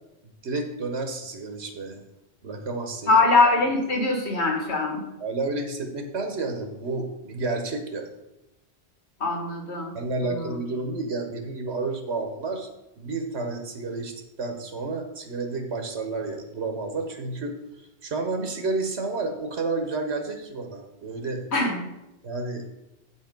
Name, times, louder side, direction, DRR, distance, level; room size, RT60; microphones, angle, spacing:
voice 1, 0.2-2.0 2.4-3.2 5.2-8.2 9.9-12.7 13.0-21.5 22.2-22.6, right 3 dB, 85° right, 5 dB, 1.3 m, -31 dB
voice 2, 3.1-5.0 9.2-9.9 10.3-10.4 21.5-21.8, left 3 dB, 85° left, 1 dB, 2.0 m, -22 dB
8.2 x 5.5 x 5.2 m, 0.94 s
omnidirectional pair, 1.1 m